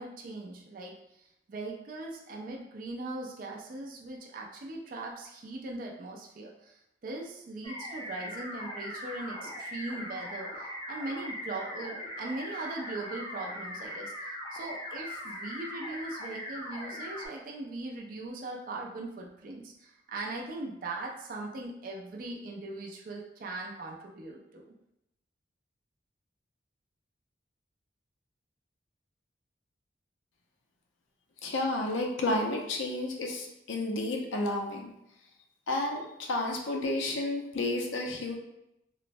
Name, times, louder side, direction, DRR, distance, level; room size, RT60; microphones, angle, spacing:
voice 1, 0.0-24.7, right 2 dB, 45° right, 0 dB, 0.3 m, -40 dB
sound 1, 7.6-17.3, left 1 dB, 25° left, 0.5 m, -40 dB
voice 2, 31.4-34.9 35.7-38.4, left 2 dB, 80° left, 1 dB, 0.4 m, -31 dB
3.0 x 2.0 x 2.5 m, 0.85 s
head